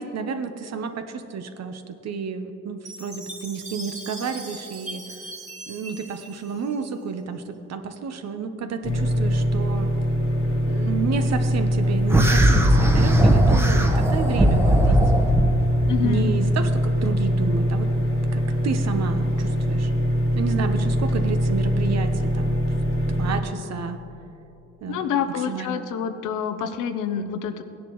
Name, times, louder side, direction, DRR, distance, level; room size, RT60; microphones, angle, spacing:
voice 1, 0.0-5.0 5.7-9.9 10.6-15.0 16.0-17.9 18.3-19.9 20.3-22.6 23.1-24.0 24.8-25.1 25.5-25.9, right 5 dB, 60° right, 8 dB, 1.0 m, -31 dB
Chime, 2.8-7.2, right 2 dB, 25° right, 2.3 m, -39 dB
sound 1, 8.8-23.4, equal, 45° left, 1.4 m, -23 dB
sound 2, 12.1-15.5, right 1 dB, 10° right, 1.0 m, -18 dB
voice 2, 15.9-16.3 24.9-27.6, left 7 dB, 85° left, 9 dB, 0.8 m, -27 dB
17.0 x 10.5 x 3.1 m, 2.9 s
cardioid pair, 90°, 30 cm